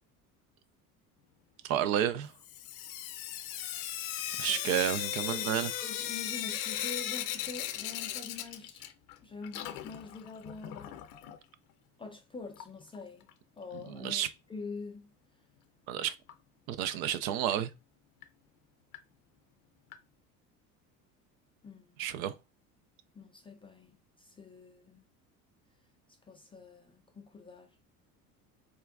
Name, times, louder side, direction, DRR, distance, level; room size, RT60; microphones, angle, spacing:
voice 1, 1.6-2.3 4.4-5.7 13.9-14.3 15.9-16.1 16.7-17.7 22.0-22.3, right 11 dB, 65° right, 0.5 m, -31 dB
Sink (filling or washing) / Drip, 2.4-9.2 9.4-11.4 12.5-12.6 12.9-13.0 13.3-13.4 16.3-16.4 16.9-17.0 17.5-17.6 18.2-18.3 18.9-19.0 19.9-20.0, left 12 dB, 60° left, 0.6 m, -37 dB
voice 2, 4.5-4.8 5.3-8.9 9.2-11.0 12.0-13.3 13.6-15.1 21.6-22.1 23.2-25.0 26.3-27.7, left 4 dB, 15° left, 0.3 m, -45 dB
4.3 x 2.4 x 2.4 m
hypercardioid pair, 70°, 46 cm